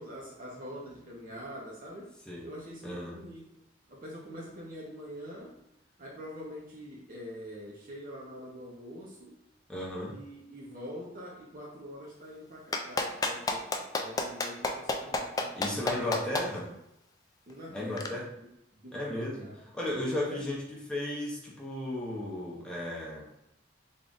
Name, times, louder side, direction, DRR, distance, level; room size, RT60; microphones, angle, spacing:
voice 1, 0.0-2.1 2.4-3.6 3.9-5.6 6.0-9.4 10.1-16.7 17.5-18.3 18.7-19.7 20.3-20.4, equal, 50° right, -3 dB, 0.7 m, -45 dB
voice 2, 2.8-3.2 9.7-10.2 15.5-16.7 17.7-18.3 18.9-23.3, left 1 dB, 5° left, -5 dB, 0.7 m, -35 dB
Clapping, 12.7-16.4 18.0-18.1, left 3 dB, 20° left, 0.3 m, -29 dB
3.5 x 2.3 x 3.9 m, 0.83 s
head